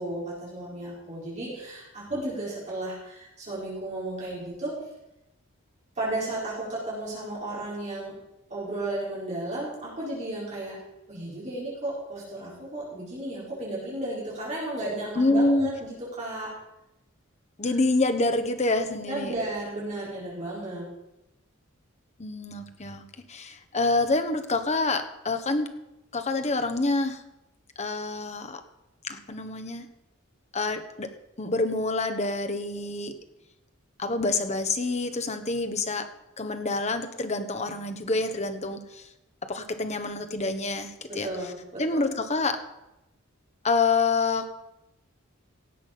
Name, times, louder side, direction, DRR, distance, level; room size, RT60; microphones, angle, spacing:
voice 1, 0.0-4.7 6.0-8.1 8.5-10.8 11.1-16.5 17.6-17.7 19.1-20.9 41.1-42.0, right 1 dB, 35° right, -7 dB, 4.5 m, -34 dB
voice 2, 15.2-15.7 17.6-19.3 22.2-23.0 23.3-25.7 26.1-27.2 27.8-28.6 29.0-29.9 30.5-31.1 31.4-33.1 34.0-36.1 36.4-39.1 39.4-41.3 41.8-42.6 43.6-44.6, left 3 dB, 35° left, 7 dB, 1.1 m, -27 dB
17.0 x 7.3 x 5.9 m, 0.91 s
head